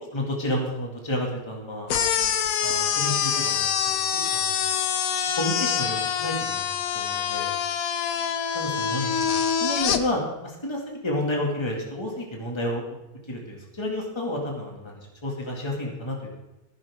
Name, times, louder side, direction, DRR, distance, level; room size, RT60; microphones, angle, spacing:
voice 1, 0.1-2.1 2.6-4.0 4.3-4.6 5.4-6.7 6.9-7.5 8.5-9.3 9.6-12.8 13.3-16.4, left 1 dB, 15° left, -1 dB, 2.4 m, -30 dB
sound 1, 1.9-10.0, left 8 dB, 60° left, 1.0 m, -25 dB
16.0 x 11.0 x 3.7 m, 0.98 s
omnidirectional pair, 2.0 m